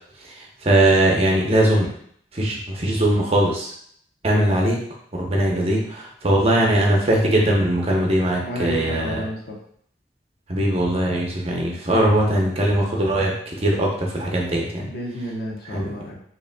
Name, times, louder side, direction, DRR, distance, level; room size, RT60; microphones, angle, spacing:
voice 1, 0.4-1.9 2.3-3.7 4.2-4.8 5.1-9.2 10.5-14.9 15.6-15.9, right 1 dB, 35° right, -1 dB, 0.8 m, -20 dB
voice 2, 8.4-9.6 14.8-16.2, equal, 60° left, -2 dB, 0.9 m, -31 dB
5.1 x 3.0 x 2.2 m, 0.65 s
head